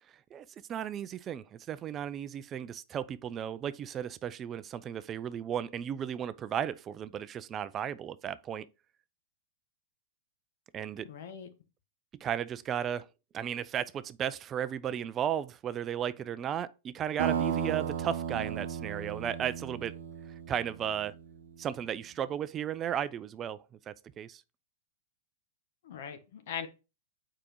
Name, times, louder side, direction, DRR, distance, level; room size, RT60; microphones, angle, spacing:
voice 1, 0.3-8.7 10.7-11.1 12.2-13.1 13.3-19.9 20.5-21.1 21.6-23.6 23.9-24.4, right 9 dB, 30° right, 0.4 m, -35 dB
voice 2, 11.1-11.5 25.8-26.7, left 8 dB, 65° left, 1.2 m, -40 dB
sound 1, 17.2-21.5, right 8 dB, 75° right, 0.9 m, -35 dB
6.8 x 4.9 x 3.0 m
hypercardioid pair, 125°, 0 cm